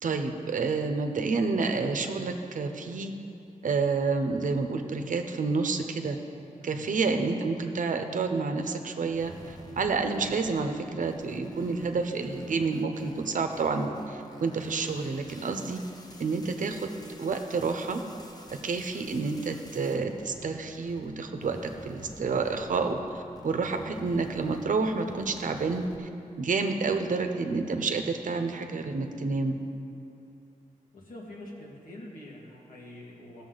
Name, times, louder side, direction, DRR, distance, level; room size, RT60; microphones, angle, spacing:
voice 1, 0.0-3.1 3.6-6.2 6.6-15.8 16.2-16.9 17.2-18.0 18.5-21.6 21.8-23.0 23.4-26.1 26.4-29.6, right 4 dB, 70° right, 6 dB, 0.8 m, -29 dB
sound 1, 9.1-21.1 21.4-26.0, left 1 dB, 30° left, 0.8 m, -49 dB
voice 2, 30.9-33.4, left 1 dB, 75° left, -3 dB, 2.0 m, -45 dB
16.5 x 7.0 x 4.0 m, 2.7 s
wide cardioid pair, 170°, 14 cm